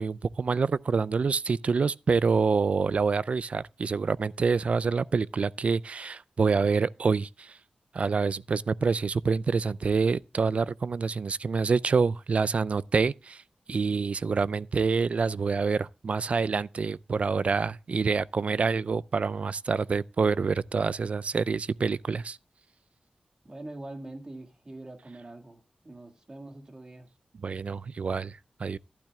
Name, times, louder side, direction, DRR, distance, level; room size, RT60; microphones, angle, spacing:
voice 1, 0.0-7.6 7.9-13.4 13.7-22.4 27.4-28.8, right 5 dB, 60° right, 0.4 m, -27 dB
voice 2, 23.4-27.1, right 2 dB, 35° right, 2.1 m, -44 dB
12.0 x 12.0 x 2.3 m
wide cardioid pair, 100°, 2 cm